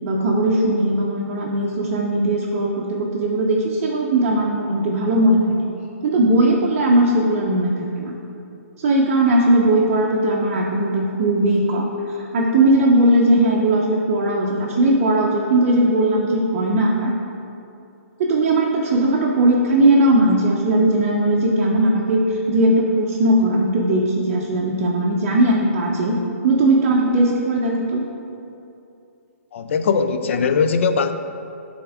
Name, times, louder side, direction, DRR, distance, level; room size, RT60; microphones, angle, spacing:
voice 1, 0.0-5.4 6.0-8.1 8.8-17.1 18.2-26.2 26.4-28.0, right 1 dB, 35° right, -3 dB, 0.6 m, -18 dB
voice 2, 29.5-31.1, left 5 dB, 55° left, 9 dB, 0.4 m, -20 dB
8.4 x 3.6 x 3.5 m, 2.7 s
hypercardioid pair, 155°, 8 cm